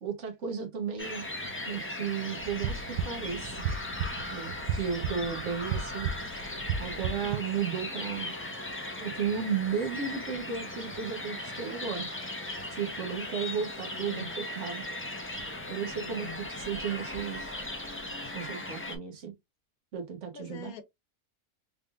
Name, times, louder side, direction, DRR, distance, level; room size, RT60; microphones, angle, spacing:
voice 1, 0.0-3.6 4.3-6.5 6.8-8.3 9.0-12.1 12.7-14.9 15.7-17.5 18.3-19.3 19.9-20.7, right 7 dB, 55° right, 1.4 m, -34 dB
sound 1, 1.0-19.0, left 1 dB, 15° left, 0.5 m, -38 dB
sound 2, 2.4-7.4, right 6 dB, 85° right, 1.1 m, -34 dB
voice 2, 13.9-14.3 15.9-16.4 20.3-20.8, left 3 dB, 85° left, 1.2 m, -43 dB
3.7 x 3.4 x 2.4 m
omnidirectional pair, 1.5 m